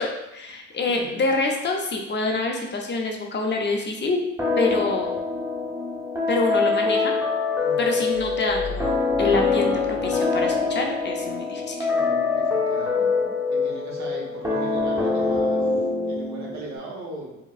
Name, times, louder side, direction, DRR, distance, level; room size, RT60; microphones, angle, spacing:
voice 1, 0.0-4.2 4.6-5.1 6.3-7.1 7.8-11.9, left 3 dB, 35° left, 2 dB, 0.7 m, -26 dB
voice 2, 0.7-1.2 7.6-8.0 11.9-13.0 13.5-17.4, right 2 dB, 70° right, -1 dB, 1.1 m, -39 dB
sound 1, 4.4-16.8, left 4 dB, 10° right, 0.9 m, -24 dB
sound 2, 8.1-10.7, left 1 dB, 90° right, 0.5 m, -38 dB
4.8 x 2.2 x 2.4 m, 0.90 s
cardioid pair, 90°, 30 cm